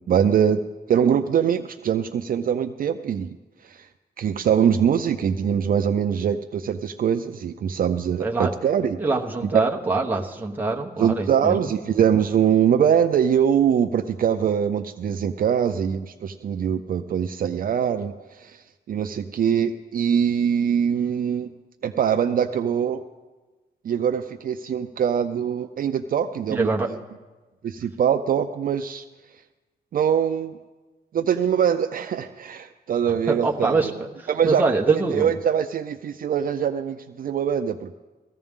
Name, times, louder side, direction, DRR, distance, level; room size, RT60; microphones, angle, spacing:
voice 1, 0.1-0.6 0.9-3.4 3.6-3.9 4.2-9.0 9.4-9.7 11.0-21.5 21.8-23.0 23.8-26.7 27.6-29.0 29.9-30.6 31.1-33.9 34.3-37.9, right 8 dB, 55° right, 8 dB, 0.5 m, -23 dB
voice 2, 8.2-8.5 9.0-11.7 26.5-26.9 33.3-33.9 34.2-35.4, right 3 dB, 10° right, -1 dB, 1.1 m, -24 dB
18.0 x 14.5 x 3.6 m, 1.2 s
wide cardioid pair, 145°, 17 cm